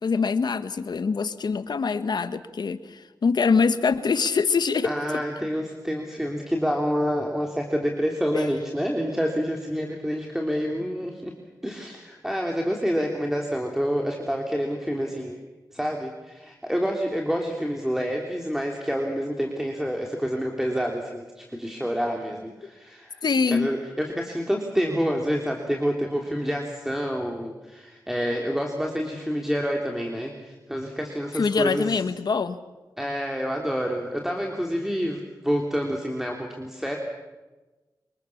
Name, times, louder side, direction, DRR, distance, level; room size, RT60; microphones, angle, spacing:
voice 1, 0.0-5.2 8.3-8.4 23.2-23.7 31.3-32.6, left 5 dB, 70° left, 11 dB, 1.4 m, -24 dB
voice 2, 4.8-11.3 11.6-15.4 15.7-31.8 33.0-37.0, equal, 5° right, 1 dB, 3.3 m, -28 dB
25.5 x 22.0 x 7.2 m, 1.2 s
cardioid pair, 55°, 8 cm